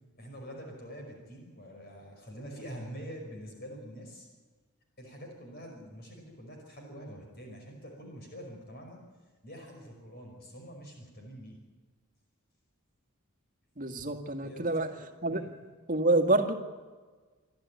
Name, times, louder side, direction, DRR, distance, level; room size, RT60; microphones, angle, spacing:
voice 1, 0.2-4.3 5.0-9.0 9.4-11.6 14.4-15.5, equal, 45° left, 1 dB, 5.4 m, -46 dB
voice 2, 13.8-14.9 15.2-15.4 15.9-16.5, right 2 dB, 35° right, 6 dB, 1.8 m, -27 dB
27.5 x 12.5 x 9.5 m, 1.4 s
head